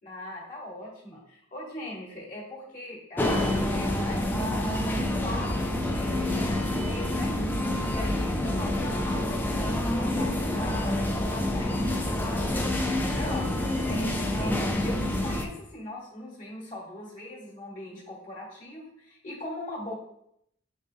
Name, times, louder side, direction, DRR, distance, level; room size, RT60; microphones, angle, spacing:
voice 1, 0.0-4.6 4.9-7.4 7.8-19.9, left 1 dB, 40° left, -5 dB, 1.3 m, -40 dB
sound 1, 3.2-15.5, left 1 dB, 10° left, 0.3 m, -27 dB
5.3 x 3.4 x 2.6 m, 0.75 s
head